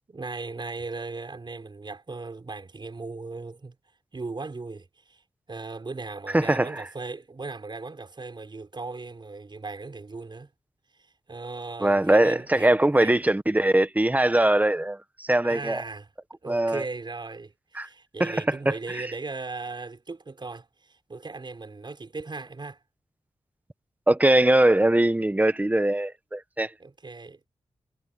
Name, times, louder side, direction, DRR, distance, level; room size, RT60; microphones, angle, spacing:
voice 1, 0.1-3.8 4.1-5.2 5.5-10.5 11.3-13.2 15.4-16.1 16.4-22.8 26.8-27.5, right 3 dB, 45° right, 5.3 m, -37 dB
voice 2, 6.3-6.8 11.8-15.8 16.5-16.8 17.7-17.9 18.2-18.6 18.9-19.1 24.1-26.7, right 1 dB, 15° right, 1.3 m, -21 dB
wide cardioid pair, 75°, 11 cm